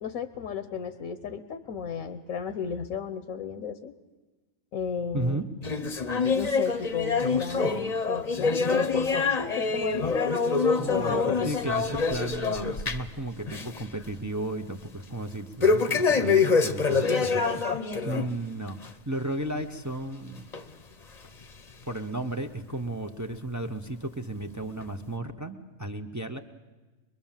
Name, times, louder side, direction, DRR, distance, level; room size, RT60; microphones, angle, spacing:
voice 1, 0.0-3.9 4.7-5.4 6.3-10.3 10.9-11.7 17.9-18.3, left 7 dB, 80° left, 10 dB, 1.3 m, -34 dB
voice 2, 5.1-5.4 10.8-17.7 18.0-20.4 21.9-26.4, right 1 dB, 15° right, 5 dB, 0.7 m, -34 dB
sound 1, 5.6-13.2 13.5-13.8 14.2-14.3 15.6-18.3 18.7-18.9 19.6-19.7 20.5-20.6 21.4-21.5, left 4 dB, 35° left, 0.9 m, -25 dB
23.0 x 22.5 x 7.4 m, 1.3 s
omnidirectional pair, 1.4 m